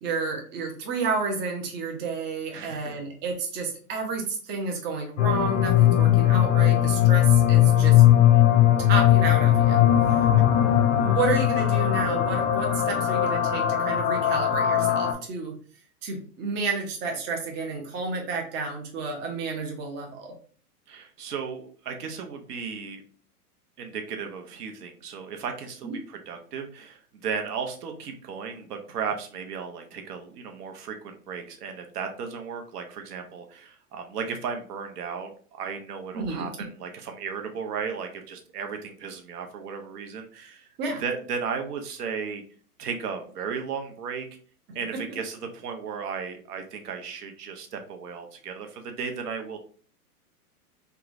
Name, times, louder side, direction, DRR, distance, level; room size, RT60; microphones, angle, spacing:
voice 1, 0.0-8.0 8.9-9.8 11.0-15.5 16.0-20.3 25.8-26.0 36.1-36.7 40.8-41.0 44.9-45.0, right 4 dB, 25° right, 1 dB, 0.6 m, -31 dB
voice 2, 2.5-2.9 10.1-10.2 20.9-23.0 23.8-40.7 41.0-42.4 42.8-44.3 44.7-49.6, right 6 dB, 80° right, 4 dB, 0.8 m, -35 dB
sound 1, 5.2-15.1, left 12 dB, 50° left, 0.6 m, -19 dB
3.0 x 2.3 x 2.5 m, 0.43 s
hypercardioid pair, 120°, 46 cm